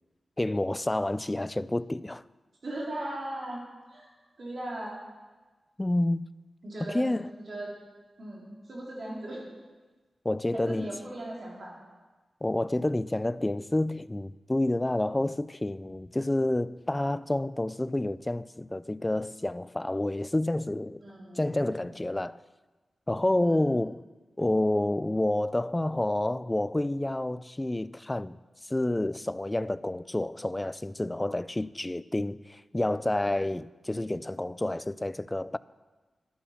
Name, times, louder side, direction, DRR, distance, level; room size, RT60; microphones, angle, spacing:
voice 1, 0.4-2.2 5.8-6.3 6.8-7.3 10.2-10.9 12.4-21.0 21.4-22.4 23.1-24.0 24.4-35.6, left 1 dB, 15° left, 0.4 m, -29 dB
voice 2, 2.6-3.6 3.9-4.1 4.4-5.0 6.6-7.1 7.5-7.7 8.2-9.4 10.5-11.7 21.0-21.8 23.4-23.6, right 1 dB, 60° right, 4.1 m, -38 dB
12.0 x 11.0 x 6.0 m
wide cardioid pair, 80°, 0 cm